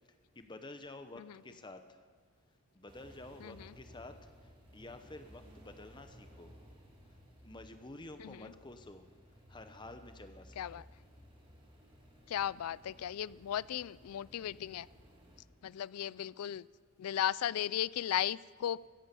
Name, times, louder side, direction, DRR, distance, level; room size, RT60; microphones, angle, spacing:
voice 1, 0.4-2.0 2.7-6.5 7.4-9.0 9.5-10.8 16.1-16.3, left 2 dB, 20° left, 8 dB, 0.8 m, -50 dB
sound 1, 2.9-15.4, equal, 25° right, 2.3 m, -58 dB
voice 2, 12.3-14.9 15.6-16.6 17.0-18.8, left 10 dB, 85° left, 22 dB, 0.3 m, -35 dB
14.5 x 10.0 x 8.3 m, 1.5 s
head